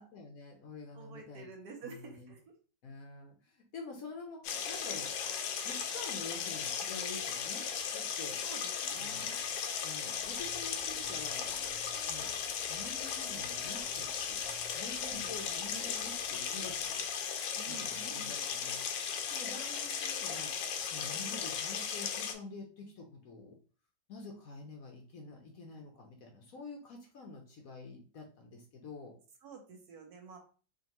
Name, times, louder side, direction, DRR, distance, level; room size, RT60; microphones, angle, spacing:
voice 1, 0.0-1.5 1.8-2.3 2.8-5.2 5.6-7.7 7.9-8.4 9.0-9.4 9.8-11.6 12.1-12.3 12.7-14.5 14.7-17.0 17.7-18.9 19.3-20.5 20.9-23.6 24.1-29.2, left 3 dB, 65° left, 3 dB, 0.9 m, -48 dB
voice 2, 0.9-2.4 8.4-9.4 15.1-15.6 17.6-18.3 20.3-20.5 21.1-21.2 29.4-30.4, right 4 dB, 65° right, 2 dB, 1.3 m, -50 dB
sound 1, 4.4-22.3, left 7 dB, 85° left, 1.3 m, -36 dB
sound 2, 10.2-17.0, right 3 dB, 50° right, 1.0 m, -57 dB
4.8 x 2.6 x 2.9 m, 0.39 s
omnidirectional pair, 1.9 m